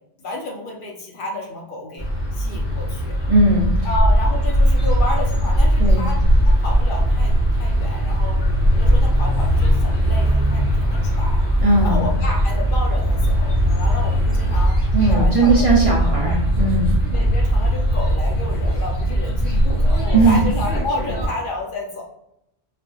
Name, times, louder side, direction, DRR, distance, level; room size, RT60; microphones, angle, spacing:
voice 1, 0.2-3.2 3.8-8.4 8.7-11.4 11.8-14.8 15.1-16.4 17.1-22.0, left 2 dB, 60° left, -1 dB, 0.8 m, -31 dB
sound 1, 2.0-21.3, equal, 30° left, 1.5 m, -20 dB
voice 2, 3.3-3.7 5.8-6.1 11.6-12.0 14.9-16.9 20.1-20.4, right 3 dB, 40° right, -3 dB, 0.6 m, -17 dB
sound 2, 3.9-10.0 10.3-10.7 11.1-12.1 12.7-14.9 15.3-15.6 16.6-16.7 18.9-19.0 19.3-20.2, equal, 80° left, 1.2 m, -20 dB
4.2 x 2.4 x 2.3 m, 0.79 s
omnidirectional pair, 1.1 m